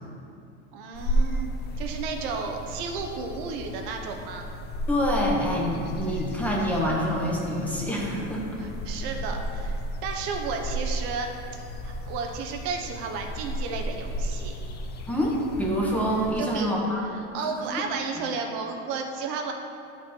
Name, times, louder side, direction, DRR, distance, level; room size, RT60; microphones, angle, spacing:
voice 1, 0.7-1.5 1.8-4.5 8.6-14.5 16.4-16.7 17.1-19.5, right 5 dB, 65° right, 3 dB, 1.0 m, -33 dB
sound 1, 0.9-16.3, equal, 30° left, 0.7 m, -33 dB
voice 2, 4.9-8.6 15.1-17.0 17.4-17.5, equal, 5° left, -3 dB, 1.3 m, -26 dB
11.0 x 5.3 x 4.5 m, 2.6 s
supercardioid pair, 140°, 33 cm